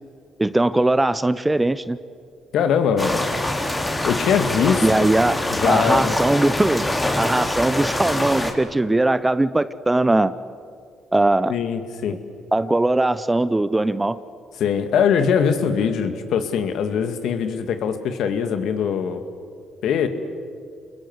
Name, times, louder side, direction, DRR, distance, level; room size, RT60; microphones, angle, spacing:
voice 1, 0.4-2.0 4.8-5.4 5.6-6.9 7.2-10.3 11.1-11.5 12.5-14.2, right 2 dB, 15° right, 15 dB, 0.9 m, -20 dB
voice 2, 2.5-3.2 4.0-4.9 5.5-6.1 11.5-12.1 14.6-19.2 19.8-20.1, left 7 dB, 70° left, 8 dB, 2.2 m, -21 dB
sound 1, 3.0-8.5, left 1 dB, 15° left, 3.8 m, -24 dB
29.0 x 21.0 x 8.1 m, 2.2 s
supercardioid pair, 65°, 0 cm